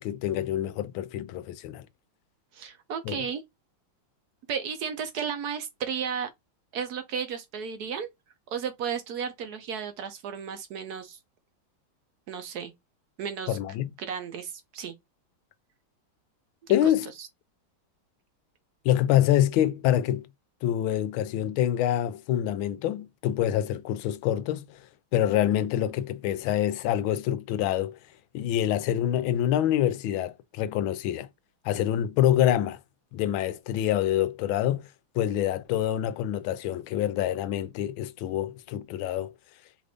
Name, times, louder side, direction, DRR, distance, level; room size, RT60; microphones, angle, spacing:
voice 1, 0.0-1.9 3.1-3.2 13.5-13.9 16.7-17.1 18.8-20.3 20.6-24.7 25.1-28.0 28.3-31.3 31.6-32.8 33.1-34.9 35.1-39.3, left 11 dB, 80° left, 1.3 m, -26 dB
voice 2, 2.5-3.4 4.5-6.3 6.7-8.1 8.5-11.2 12.3-12.7 13.2-13.6 14.0-14.9 16.8-16.9 17.2-17.3, right 7 dB, 65° right, 1.0 m, -33 dB
4.9 x 2.6 x 3.4 m
omnidirectional pair, 2.3 m